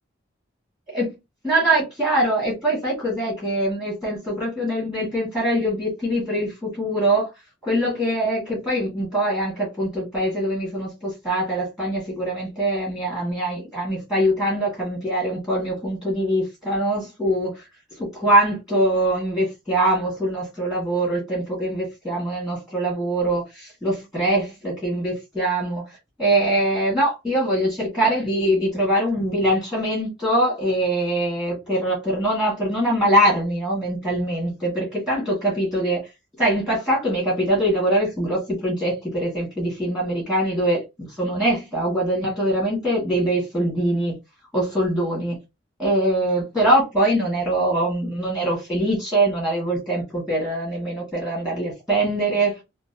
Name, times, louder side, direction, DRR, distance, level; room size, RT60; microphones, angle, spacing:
voice 1, 1.4-7.3 7.6-17.6 18.0-25.8 26.2-36.0 36.4-44.2 44.5-45.4 45.8-52.6, right 1 dB, 5° right, 1.4 m, -23 dB
2.9 x 2.5 x 2.6 m
head